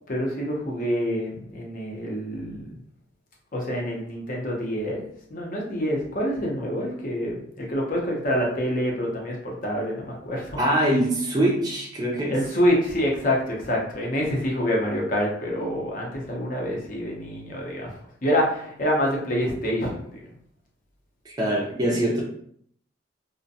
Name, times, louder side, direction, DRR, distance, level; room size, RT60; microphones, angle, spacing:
voice 1, 0.1-2.7 3.5-5.0 5.3-10.6 12.3-18.0 18.2-20.3, equal, 45° left, -1 dB, 0.7 m, -26 dB
voice 2, 10.6-12.4 21.3-22.2, right 1 dB, 20° right, -3 dB, 0.4 m, -23 dB
2.5 x 2.1 x 2.6 m, 0.65 s
head